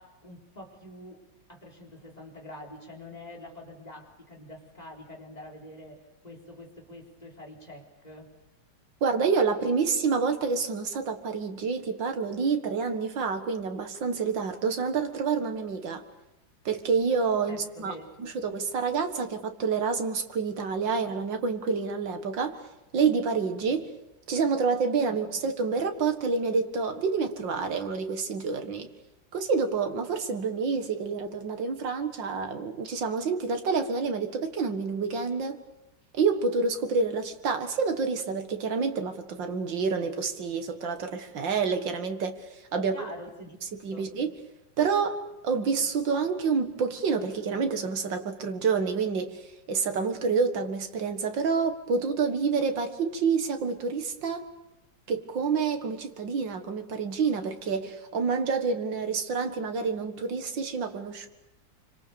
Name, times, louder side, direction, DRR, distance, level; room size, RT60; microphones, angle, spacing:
voice 1, 0.0-8.3 17.5-18.1 25.1-25.2 42.7-44.1, left 1 dB, 20° left, -1 dB, 4.3 m, -46 dB
voice 2, 9.0-16.0 16.7-22.6 22.9-23.9 24.3-28.9 29.3-35.6 36.2-42.3 42.7-43.0 43.8-44.3 44.8-49.4 49.7-54.5 55.1-61.3, right 5 dB, 80° right, 6 dB, 2.5 m, -28 dB
26.5 x 25.0 x 7.0 m, 0.92 s
omnidirectional pair, 2.0 m